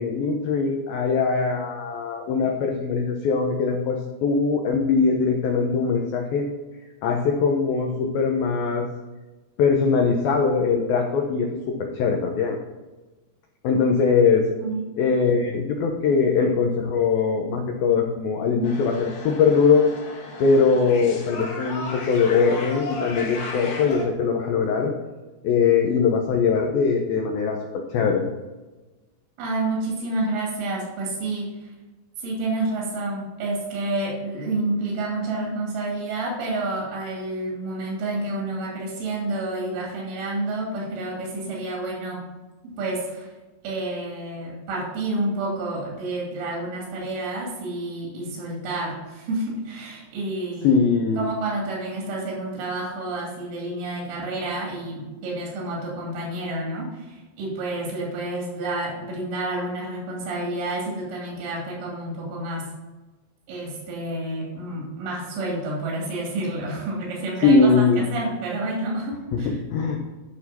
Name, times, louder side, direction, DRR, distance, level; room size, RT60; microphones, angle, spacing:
voice 1, 0.0-6.5 7.0-8.9 9.6-12.6 13.6-14.5 15.0-19.9 20.4-24.9 25.4-28.2 50.6-51.3 67.4-68.0 69.3-70.0, left 5 dB, 85° left, 2 dB, 2.0 m, -21 dB
sound 1, 18.6-24.0, left 3 dB, 60° left, 3.3 m, -35 dB
voice 2, 29.4-31.5 32.2-42.2 42.8-43.3 43.6-50.7 51.2-62.6 63.5-67.6 68.0-69.6, right 2 dB, 90° right, -3 dB, 5.0 m, -29 dB
11.5 x 6.0 x 4.2 m, 1.2 s
omnidirectional pair, 5.4 m